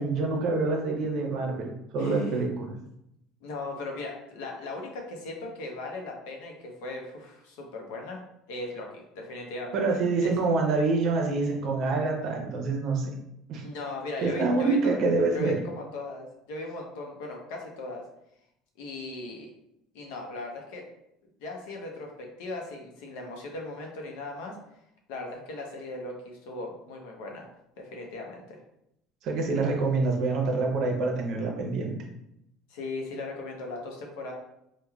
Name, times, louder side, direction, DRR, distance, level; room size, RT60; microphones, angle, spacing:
voice 1, 0.0-2.7 9.7-13.1 13.5-13.6 14.2-15.6 29.2-31.9, right 3 dB, 55° right, 1 dB, 0.7 m, -26 dB
voice 2, 2.0-2.4 3.4-8.2 8.5-9.8 10.2-10.3 13.6-15.0 15.3-18.0 18.8-19.5 19.9-20.8 21.4-24.6 25.1-27.5 27.8-28.6 32.7-34.3, left 2 dB, 85° left, 1 dB, 0.6 m, -38 dB
3.1 x 2.2 x 2.3 m, 0.80 s
supercardioid pair, 120°, 0 cm